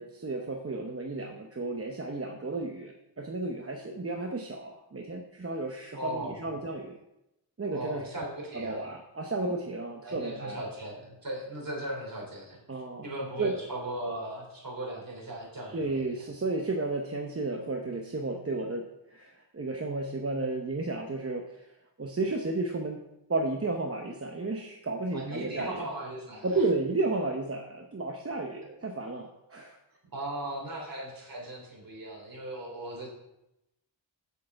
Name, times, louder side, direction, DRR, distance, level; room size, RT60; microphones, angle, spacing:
voice 1, 0.0-7.0 7.6-8.1 8.5-10.6 12.7-13.1 13.4-13.6 15.7-18.8 19.1-21.7 22.0-23.0 23.3-25.9 26.4-29.8, right 2 dB, 30° right, 2 dB, 0.8 m, -33 dB
voice 2, 5.9-6.4 7.7-8.8 10.0-15.8 25.1-26.6 30.1-33.1, right 1 dB, 45° right, -2 dB, 3.2 m, -38 dB
7.7 x 6.6 x 4.7 m, 0.88 s
wide cardioid pair, 85°, 46 cm